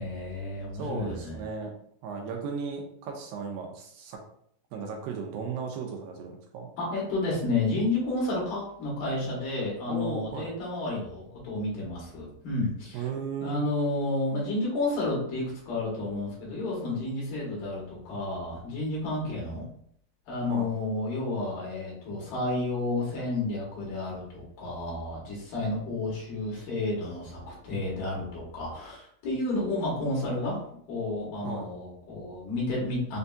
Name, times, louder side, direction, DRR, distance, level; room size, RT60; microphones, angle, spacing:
voice 1, 0.0-1.4 6.8-13.0 13.4-19.6 20.3-30.6 30.9-33.2, left 2 dB, 70° left, -4 dB, 3.0 m, -31 dB
voice 2, 0.7-4.2 4.7-6.7 9.9-10.5 12.9-13.7 20.5-20.7 31.4-31.7, right 5 dB, 80° right, 1 dB, 2.4 m, -35 dB
6.5 x 2.7 x 2.3 m, 0.67 s
omnidirectional pair, 4.2 m